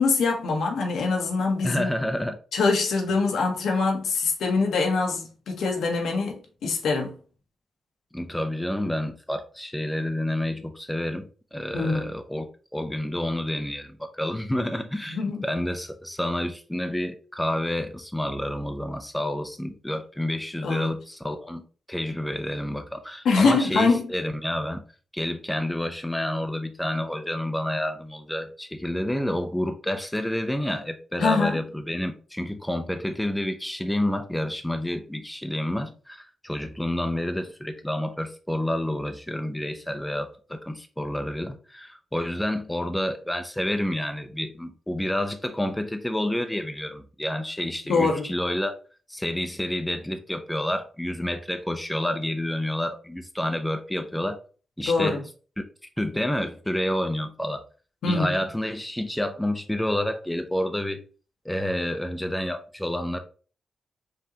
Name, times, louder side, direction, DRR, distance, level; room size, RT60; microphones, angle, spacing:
voice 1, 0.0-1.9 2.5-7.2 11.7-12.1 15.1-15.4 20.6-20.9 23.2-24.1 31.2-31.6 47.9-48.3 54.9-55.2 58.0-58.4, left 4 dB, 85° left, 1.1 m, -24 dB
voice 2, 1.6-2.4 8.1-12.5 12.7-21.6 21.9-24.8 25.1-48.7 49.1-54.4 54.8-55.2 56.0-57.6 58.1-61.0 61.4-63.2, left 1 dB, 5° left, 0.5 m, -29 dB
5.3 x 2.9 x 2.8 m
cardioid pair, 110°, 0 cm